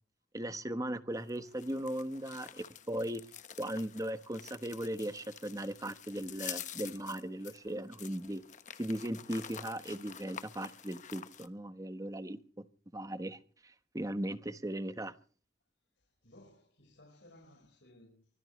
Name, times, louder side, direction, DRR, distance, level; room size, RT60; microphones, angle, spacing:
voice 1, 0.3-3.2 3.6-8.4 8.8-12.4 12.9-15.1, right 1 dB, 20° right, 1.1 m, -38 dB
sound 1, 1.1-11.5, left 9 dB, 45° left, 1.2 m, -48 dB
voice 2, 16.0-18.3, left 1 dB, 90° left, 5.1 m, -59 dB
24.5 x 16.5 x 3.2 m
head